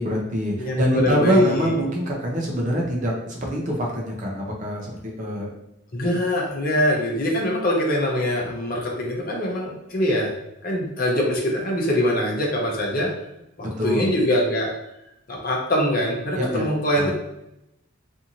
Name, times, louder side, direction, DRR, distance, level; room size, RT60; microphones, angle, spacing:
voice 1, 0.0-5.5 6.1-6.2 13.6-14.1 16.4-16.7 17.0-17.1, equal, 35° right, -1 dB, 0.5 m, -25 dB
voice 2, 0.6-1.8 5.9-10.3 10.6-13.1 13.6-14.7 15.3-17.1, left 1 dB, 40° left, -2 dB, 0.6 m, -23 dB
2.6 x 2.5 x 2.9 m, 0.86 s
head